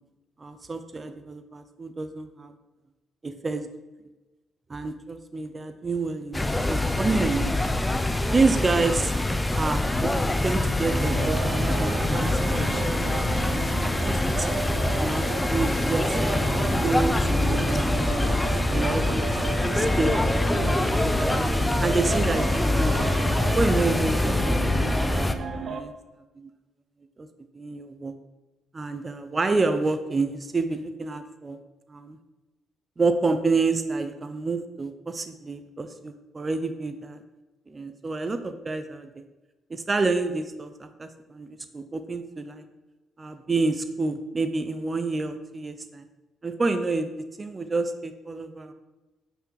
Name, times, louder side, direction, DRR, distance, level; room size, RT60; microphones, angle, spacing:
voice 1, 0.4-2.5 3.2-3.7 4.7-7.5 8.3-9.1 9.5-13.5 13.9-16.2 16.7-18.3 18.7-23.0 23.6-25.3 25.5-25.9 26.4-26.5 27.2-27.3 27.5-28.1 28.7-31.6 31.9-32.2 33.0-37.2 37.7-39.1 39.7-42.6 43.2-46.0 46.4-47.1 47.4-48.7, right 3 dB, 30° right, 9 dB, 0.8 m, -29 dB
sound 1, 6.3-25.3, left 1 dB, 15° left, 0.8 m, -24 dB
sound 2, 10.9-25.8, right 4 dB, 55° right, 1.0 m, -33 dB
9.3 x 6.0 x 5.9 m, 1.1 s
cardioid pair, 90°, 0 cm